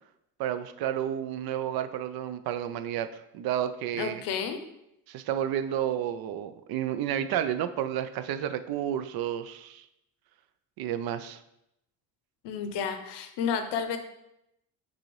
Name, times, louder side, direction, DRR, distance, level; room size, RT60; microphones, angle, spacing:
voice 1, 0.4-4.2 5.1-9.8 10.8-11.4, right 10 dB, 60° right, 11 dB, 0.5 m, -31 dB
voice 2, 4.0-4.6 12.4-14.0, left 7 dB, 75° left, 8 dB, 0.7 m, -31 dB
6.1 x 2.7 x 3.1 m, 0.83 s
supercardioid pair, 80°, 42 cm